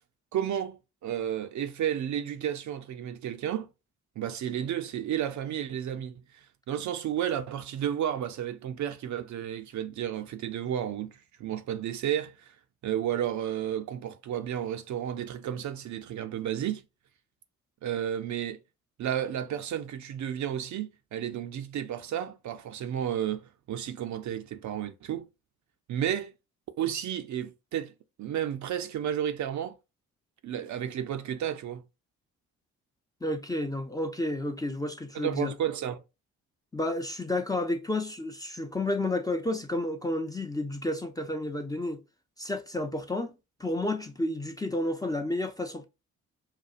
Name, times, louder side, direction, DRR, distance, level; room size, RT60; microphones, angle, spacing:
voice 1, 0.3-3.7 4.2-12.5 12.8-16.8 17.8-18.6 19.0-25.3 25.9-26.3 26.8-27.9 28.2-29.8 30.4-31.8 35.1-36.0, right 10 dB, 45° right, 0.5 m, -32 dB
voice 2, 33.2-35.5 36.7-42.0 42.4-43.3 43.6-45.9, left 1 dB, 10° left, 0.5 m, -31 dB
5.8 x 2.3 x 2.4 m
figure-of-eight pair, 40°, 42 cm